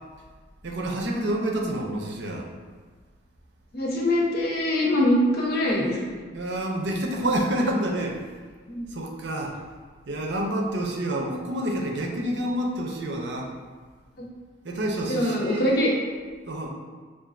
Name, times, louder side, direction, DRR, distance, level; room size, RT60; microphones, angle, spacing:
voice 1, 0.6-2.4 6.3-8.2 8.9-9.5 10.1-13.5 14.6-15.7 16.5-16.7, right 1 dB, 65° right, 0 dB, 0.6 m, -28 dB
voice 2, 3.7-6.1 8.7-8.8 14.2-14.3 15.1-15.9, left 1 dB, 55° left, -3 dB, 0.8 m, -23 dB
5.7 x 2.4 x 2.4 m, 1.5 s
head